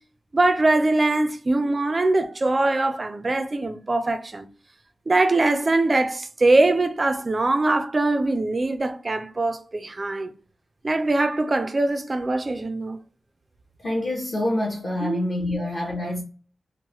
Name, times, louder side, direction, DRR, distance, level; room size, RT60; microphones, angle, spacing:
voice 1, 0.3-4.5 5.1-10.3 10.8-13.0 15.0-15.2 15.5-15.7, right 2 dB, 30° right, 0.3 m, -22 dB
voice 2, 13.8-16.2, left 1 dB, 35° left, 0.6 m, -26 dB
2.9 x 2.0 x 2.9 m
wide cardioid pair, 170°, 0 cm